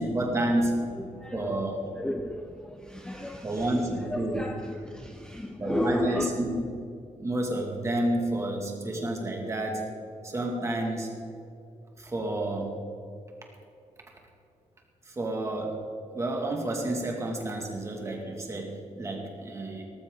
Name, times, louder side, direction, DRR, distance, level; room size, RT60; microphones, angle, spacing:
voice 1, 0.0-0.8 1.3-1.9 3.4-4.5 5.6-6.6 7.2-9.8 10.2-11.1 12.0-12.8 15.1-15.9 16.1-19.8, right 1 dB, 25° right, 0 dB, 2.3 m, -30 dB
voice 2, 1.0-1.4 2.0-3.5 4.1-6.3, left 1 dB, 5° left, 5 dB, 0.6 m, -33 dB
18.5 x 13.5 x 3.9 m, 2.5 s
wide cardioid pair, 170°, 12 cm